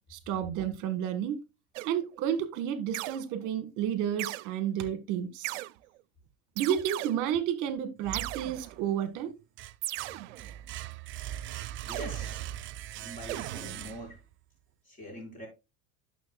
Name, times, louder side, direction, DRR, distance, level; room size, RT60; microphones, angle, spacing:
voice 1, 0.1-1.4 1.8-5.6 6.6-9.3, right 9 dB, 55° right, 1.6 m, -31 dB
sound 1, 1.8-2.2 2.9-3.5 4.2-4.5 5.4-6.0 6.6-7.4 8.1-9.1 9.8-10.7 11.9-12.8 13.3-14.2, right 18 dB, 85° right, 0.6 m, -38 dB
sound 2, 8.0-8.9 9.3-14.3, right 12 dB, 35° right, 0.5 m, -40 dB
voice 2, 11.9-12.4 13.0-14.2 14.8-15.5, equal, 20° left, 5.4 m, -43 dB
11.0 x 6.4 x 2.3 m
supercardioid pair, 120°, 36 cm